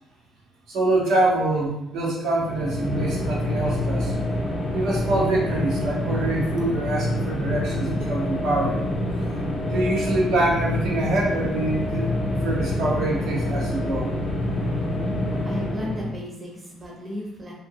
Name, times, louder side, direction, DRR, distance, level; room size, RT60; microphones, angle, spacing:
voice 1, 0.7-4.1 4.7-8.9 9.3-9.4 9.7-12.1 12.4-14.1, right 2 dB, 80° right, -4 dB, 0.9 m, -25 dB
sound 1, 2.4-16.2, left 1 dB, 35° left, 0.5 m, -26 dB
voice 2, 15.4-17.5, left 1 dB, 25° right, -3 dB, 0.7 m, -34 dB
2.7 x 2.6 x 2.7 m, 0.88 s
cardioid pair, 110°, 0 cm